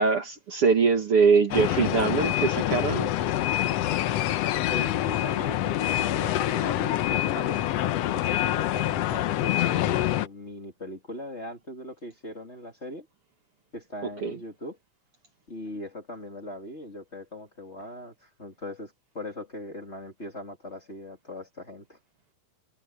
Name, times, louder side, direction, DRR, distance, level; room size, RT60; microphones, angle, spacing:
voice 1, 0.0-3.1 14.2-14.3, right 5 dB, 50° right, 2.5 m, -22 dB
sound 1, 1.5-10.3, left 13 dB, 70° left, 1.6 m, -26 dB
voice 2, 4.7-7.7 8.1-13.1 13.7-14.8 15.5-22.0, left 1 dB, 20° left, 2.8 m, -40 dB
omnidirectional pair, 3.6 m